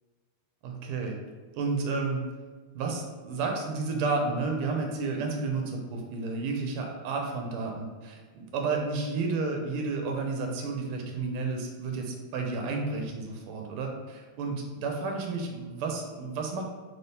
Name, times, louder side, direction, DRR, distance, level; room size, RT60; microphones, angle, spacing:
voice 1, 0.6-1.2 1.5-2.3 2.7-16.6, right 3 dB, 85° right, 2 dB, 1.5 m, -31 dB
4.0 x 3.4 x 2.7 m, 1.4 s
omnidirectional pair, 2.4 m